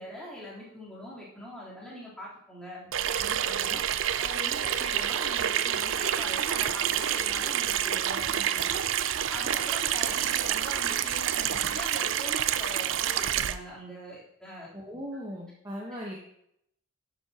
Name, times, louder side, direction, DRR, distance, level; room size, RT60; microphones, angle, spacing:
voice 1, 0.0-3.8 4.2-14.7 15.1-15.2 15.8-15.9, left 1 dB, 5° left, -8 dB, 3.5 m, -42 dB
Water tap faucet / Sink (filling or washing), 2.9-13.6, right 10 dB, 70° right, 0.5 m, -28 dB
voice 2, 14.7-16.2, equal, 20° right, -3 dB, 1.1 m, -38 dB
10.5 x 9.8 x 2.9 m, 0.74 s
head